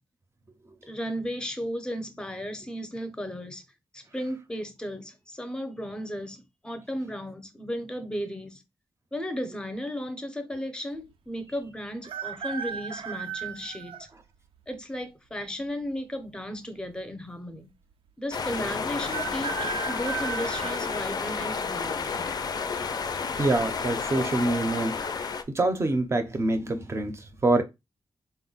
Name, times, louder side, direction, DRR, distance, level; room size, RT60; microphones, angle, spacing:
voice 1, 0.8-3.6 3.9-8.6 9.1-14.1 14.7-17.7 18.2-22.2, equal, 10° left, 0.6 m, -35 dB
sound 1, 12.0-14.1 14.7-14.8 15.9-16.6 16.9-17.0 17.1-17.2 19.0-21.7 22.2-22.6 23.7-24.1 24.3-24.4 25.0-25.3 25.8-26.0, right 7 dB, 80° right, 0.4 m, -36 dB
sound 2, 18.3-25.4, left 5 dB, 50° left, 0.5 m, -31 dB
voice 2, 23.4-25.0 25.5-27.6, right 2 dB, 30° right, 0.6 m, -25 dB
4.3 x 2.1 x 3.9 m
wide cardioid pair, 155°, 9 cm